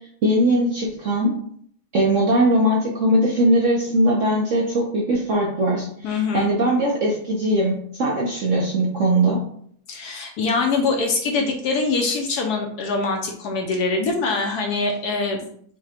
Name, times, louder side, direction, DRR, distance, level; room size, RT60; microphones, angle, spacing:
voice 1, 0.2-1.3 1.9-9.4, right 1 dB, 60° right, -2 dB, 0.8 m, -20 dB
voice 2, 6.0-6.5 9.9-15.5, left 3 dB, 70° left, 2 dB, 1.0 m, -23 dB
4.8 x 2.2 x 4.3 m, 0.63 s
omnidirectional pair, 2.0 m